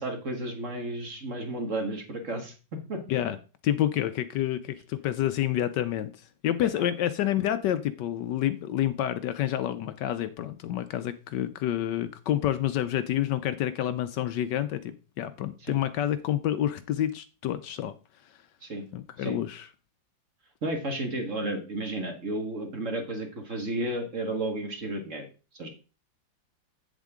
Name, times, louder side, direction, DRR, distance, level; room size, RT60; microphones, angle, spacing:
voice 1, 0.0-2.5 2.9-3.0 6.8-6.9 15.7-15.8 18.6-18.9 19.2-19.4 20.6-25.3 25.5-25.7, right 1 dB, 40° right, 1.9 m, -32 dB
voice 2, 3.6-6.1 6.4-17.9 18.9-19.7, left 11 dB, 70° left, 1.2 m, -28 dB
8.2 x 7.4 x 3.6 m
omnidirectional pair, 2.1 m